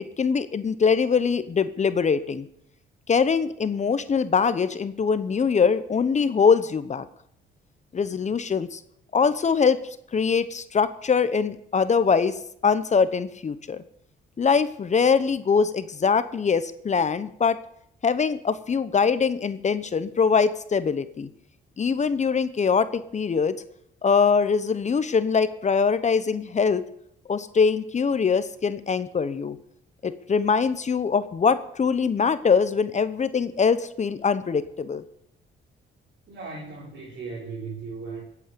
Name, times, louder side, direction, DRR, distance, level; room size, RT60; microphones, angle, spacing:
voice 1, 0.0-2.5 3.1-7.1 7.9-8.8 9.1-9.8 10.1-12.3 12.6-13.8 14.4-17.6 18.0-21.3 21.8-23.6 24.0-26.8 27.3-29.6 30.0-35.0, left 5 dB, 35° left, 13 dB, 0.9 m, -23 dB
voice 2, 36.3-38.2, right 4 dB, 65° right, -5 dB, 4.6 m, -37 dB
20.5 x 8.5 x 6.8 m, 0.73 s
cardioid pair, 90°, 20 cm